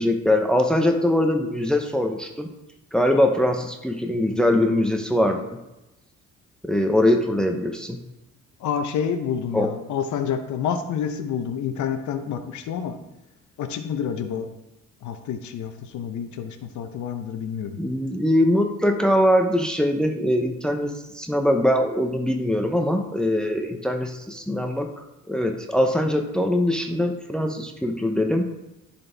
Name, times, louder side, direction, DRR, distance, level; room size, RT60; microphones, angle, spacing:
voice 1, 0.0-2.5 2.9-5.4 6.6-8.0 9.5-9.7 17.8-28.5, left 1 dB, 5° left, 4 dB, 0.7 m, -22 dB
voice 2, 8.6-13.0 13.6-14.5 15.0-17.8, left 7 dB, 75° left, 7 dB, 0.8 m, -28 dB
10.5 x 4.3 x 3.4 m, 0.95 s
cardioid pair, 90°, 30 cm